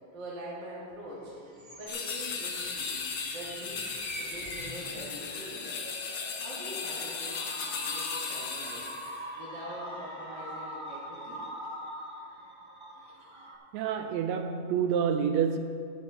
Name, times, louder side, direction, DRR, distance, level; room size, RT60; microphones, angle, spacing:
voice 1, 0.1-1.4 1.8-3.0 3.3-3.9 4.2-5.7 6.4-8.8 9.4-11.5, right 1 dB, 45° right, -7 dB, 2.1 m, -44 dB
sound 1, 1.2-13.6, equal, 20° right, 0.6 m, -43 dB
sound 2, 1.9-9.2, left 5 dB, 70° left, 1.2 m, -36 dB
voice 2, 13.7-15.6, right 7 dB, 80° right, 7 dB, 1.7 m, -28 dB
12.0 x 9.5 x 4.4 m, 2.4 s
omnidirectional pair, 3.4 m